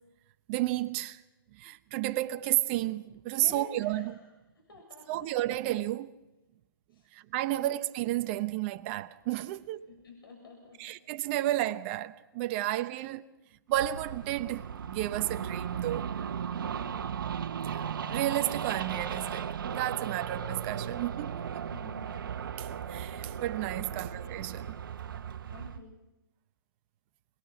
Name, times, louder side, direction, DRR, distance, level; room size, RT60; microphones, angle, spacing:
voice 1, 0.5-1.2 1.6-4.2 5.1-6.1 7.1-9.9 10.8-13.2 13.7-16.1 17.6-21.7 22.6-24.7, right 15 dB, 30° right, 0.9 m, -32 dB
voice 2, 3.3-4.2 4.7-5.2 6.9-7.0 7.4-7.7 9.9-10.8 16.5-17.1 21.7-22.1 23.8-24.1 25.0-25.9, left 3 dB, 80° left, 7.2 m, -50 dB
sound 1, 13.7-25.8, right 8 dB, 65° right, 1.3 m, -36 dB
26.5 x 20.5 x 5.9 m
hypercardioid pair, 145°, 12 cm